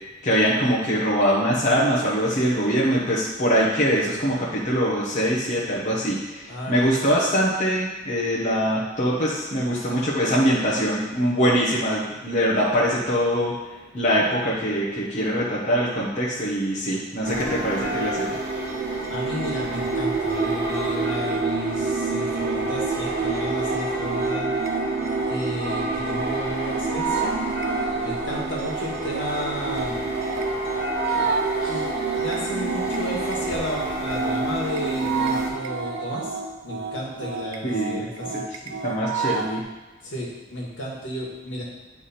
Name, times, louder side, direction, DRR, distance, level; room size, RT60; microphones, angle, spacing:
voice 1, 0.2-13.5 13.9-18.3 37.6-38.0 38.3-38.4 38.8-39.6, equal, 40° left, -7 dB, 1.1 m, -23 dB
voice 2, 6.5-6.9 19.1-24.5 25.3-27.4 28.0-30.1 31.1-31.3 31.6-31.9 32.1-36.4 36.6-38.4 40.0-41.6, left 1 dB, 70° left, -3 dB, 1.8 m, -33 dB
sound 1, 17.2-35.5, right 3 dB, 50° right, 1.2 m, -27 dB
sound 2, 22.5-39.6, right 4 dB, 85° right, 0.7 m, -31 dB
9.4 x 3.5 x 4.3 m, 1.2 s
head